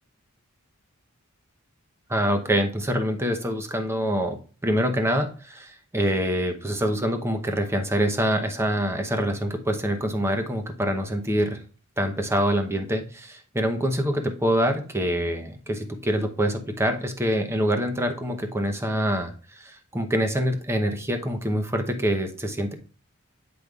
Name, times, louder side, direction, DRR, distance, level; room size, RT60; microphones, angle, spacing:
voice 1, 2.1-11.6 12.0-22.7, equal, 10° right, 5 dB, 0.8 m, -25 dB
7.9 x 5.2 x 2.4 m, 0.38 s
head